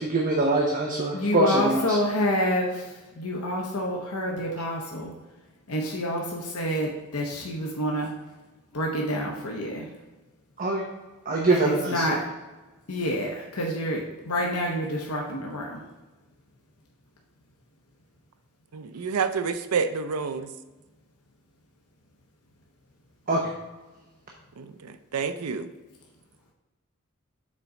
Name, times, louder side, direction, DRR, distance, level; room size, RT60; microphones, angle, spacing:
voice 1, 0.0-1.8 10.6-10.8 11.3-12.0 23.3-23.5, right 2 dB, 40° right, -1 dB, 0.9 m, -23 dB
voice 2, 1.1-5.1 5.7-8.1 8.7-9.9 11.5-12.2 12.9-15.8, equal, 80° left, -1 dB, 0.9 m, -28 dB
voice 3, 18.7-20.5 24.6-25.7, right 5 dB, 85° right, 10 dB, 0.5 m, -29 dB
7.4 x 4.0 x 4.9 m, 1.2 s
head